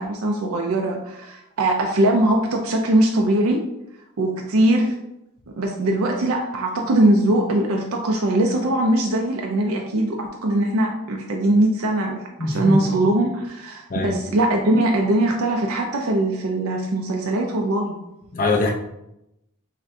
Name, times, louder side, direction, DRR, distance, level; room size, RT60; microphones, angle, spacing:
voice 1, 0.0-3.6 4.2-5.0 5.6-18.0, right 1 dB, 80° right, 1 dB, 0.5 m, -21 dB
voice 2, 12.4-12.8 13.9-14.2 18.3-18.7, left 2 dB, 40° left, -1 dB, 0.6 m, -22 dB
6.0 x 2.2 x 2.6 m, 0.86 s
head